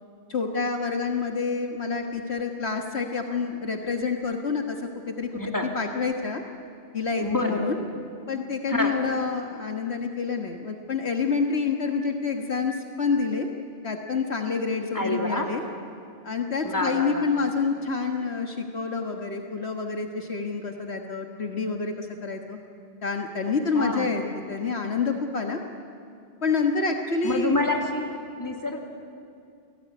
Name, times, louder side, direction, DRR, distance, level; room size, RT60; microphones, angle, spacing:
voice 1, 0.3-4.8 5.1-6.4 6.9-7.8 8.3-13.5 13.8-15.6 16.2-22.6 23.0-24.2 24.5-25.6 26.4-27.6, left 4 dB, 65° left, 4 dB, 1.8 m, -28 dB
voice 2, 5.3-5.7 7.2-7.6 8.7-8.9 14.9-15.5 16.6-17.3 23.7-24.1 27.2-28.0 28.4-28.8, left 2 dB, 15° left, 2 dB, 2.9 m, -27 dB
29.0 x 19.0 x 9.6 m, 2.4 s
omnidirectional pair, 1.2 m